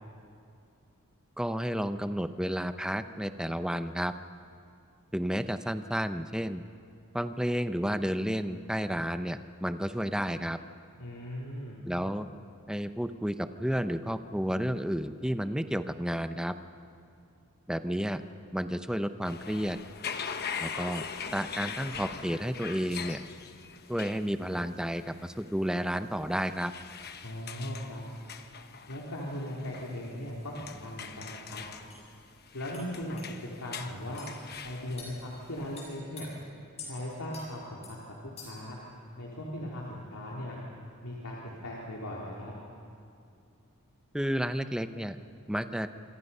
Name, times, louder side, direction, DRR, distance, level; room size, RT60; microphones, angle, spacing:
voice 1, 1.4-4.1 5.1-6.6 7.1-10.6 11.8-12.3 12.7-16.5 17.7-18.2 18.5-19.8 20.6-21.1 21.3-23.2 23.9-26.7 44.1-45.2 45.5-45.9, equal, 5° right, 10 dB, 0.7 m, -31 dB
voice 2, 11.0-11.8 27.2-28.0 28.9-31.6 32.5-33.2 33.6-34.3 34.6-36.3 36.8-38.8 39.2-40.6 41.0-42.5, left 1 dB, 85° left, -4 dB, 3.2 m, -38 dB
sound 1, 19.3-36.0, left 6 dB, 45° left, 1.0 m, -42 dB
sound 2, 31.3-31.4 31.9-32.0 32.7-32.9 33.2-33.3 34.2-34.3 35.0-35.2 35.8-36.3 36.8-36.9 37.3-37.5 37.8-38.0 38.4-38.7, left 4 dB, 30° left, 7.3 m, -46 dB
26.5 x 25.0 x 5.6 m, 2.5 s
head